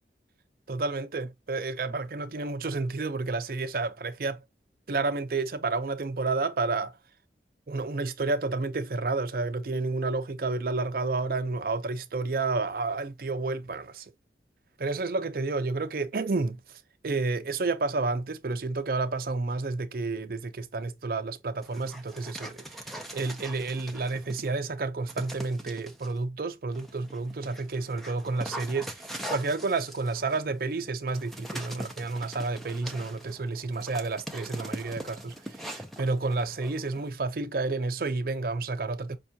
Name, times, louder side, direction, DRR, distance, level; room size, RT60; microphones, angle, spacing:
voice 1, 0.7-4.4 4.9-7.0 7.7-14.1 14.8-39.2, right 3 dB, 55° right, 0.5 m, -30 dB
Dog, 21.6-24.5 25.1-26.1 26.7-37.1, equal, ahead, 0.4 m, -42 dB
5.3 x 2.3 x 2.6 m
head